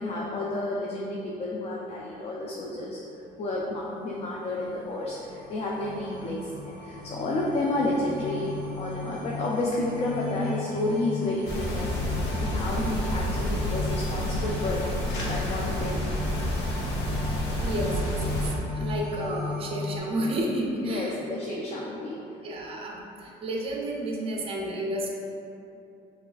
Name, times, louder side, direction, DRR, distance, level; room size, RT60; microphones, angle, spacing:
voice 1, 0.0-3.0 3.4-6.5 6.8-12.0 12.4-16.0 20.8-22.2, left 2 dB, 35° left, -3 dB, 0.4 m, -31 dB
sound 1, 3.8-20.0, left 3 dB, 10° left, 1.4 m, -37 dB
sound 2, 11.5-18.5, left 1 dB, 85° left, 0.7 m, -29 dB
voice 2, 17.3-18.5 18.7-21.2 22.4-25.1, right 1 dB, 35° right, -1 dB, 0.5 m, -31 dB
4.2 x 2.4 x 2.4 m, 2.7 s
cardioid pair, 110°, 17 cm